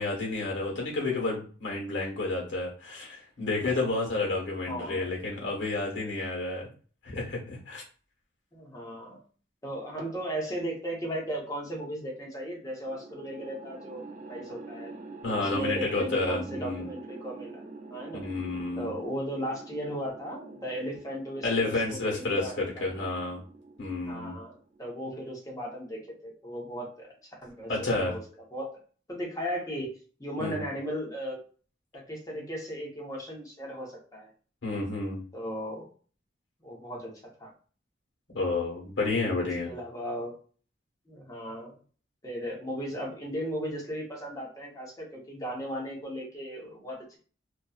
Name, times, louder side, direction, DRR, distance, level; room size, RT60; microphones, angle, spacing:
voice 1, 0.0-6.7 7.0-7.8 15.2-16.9 18.1-18.9 21.4-23.4 23.8-24.4 27.7-28.1 30.4-30.6 34.6-35.2 38.3-39.7, left 3 dB, 85° left, -1 dB, 1.1 m, -30 dB
voice 2, 4.7-5.1 8.5-9.2 9.6-15.0 15.3-17.6 17.9-18.2 18.8-23.0 24.1-24.5 24.8-27.1 27.4-28.2 28.5-28.7 29.1-29.9 30.2-31.4 31.9-34.3 35.3-35.9 36.6-37.1 37.4-37.5 39.6-40.3 41.1-41.7 42.2-47.2, equal, 20° left, -2 dB, 0.8 m, -36 dB
sound 1, 12.9-25.2, right 3 dB, 45° right, 0.4 m, -46 dB
2.5 x 2.3 x 2.3 m, 0.40 s
head